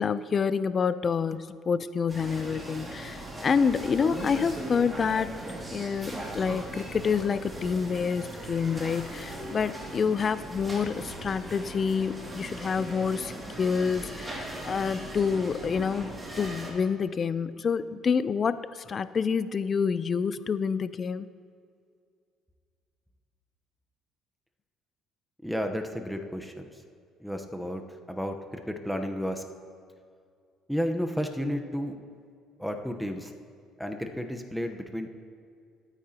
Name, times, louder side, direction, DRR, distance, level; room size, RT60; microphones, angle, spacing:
voice 1, 0.0-5.3 5.7-13.3 13.6-21.3, left 6 dB, 40° left, 14 dB, 0.5 m, -28 dB
sound 1, 2.1-16.7, right 1 dB, 20° right, 2.6 m, -39 dB
voice 2, 25.4-26.8 27.2-28.4 28.7-29.4 30.7-32.0 32.6-33.3 33.8-35.1, equal, ahead, 4 dB, 1.0 m, -32 dB
22.0 x 9.1 x 3.0 m, 2.3 s
supercardioid pair, 90°, 0 cm